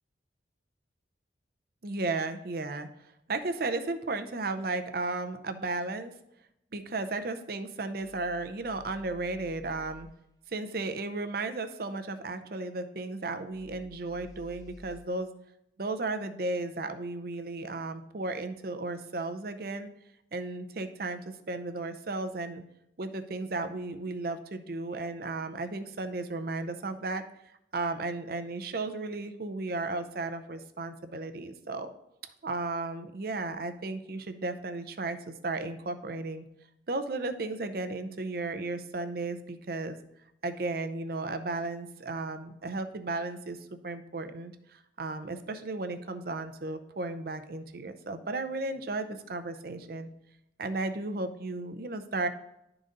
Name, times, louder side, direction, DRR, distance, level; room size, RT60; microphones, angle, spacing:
voice 1, 1.8-2.9 3.3-6.1 6.7-10.1 10.5-15.3 15.8-19.9 20.3-21.2 21.5-22.6 23.0-27.2 27.7-31.9 32.4-35.2 35.4-36.5 36.9-40.0 40.4-50.1 50.6-52.3, right 3 dB, 55° right, 9 dB, 0.6 m, -34 dB
sound 1, 8.0-10.1 13.5-15.0, left 1 dB, 20° left, 0.5 m, -52 dB
11.0 x 3.9 x 3.8 m, 0.82 s
head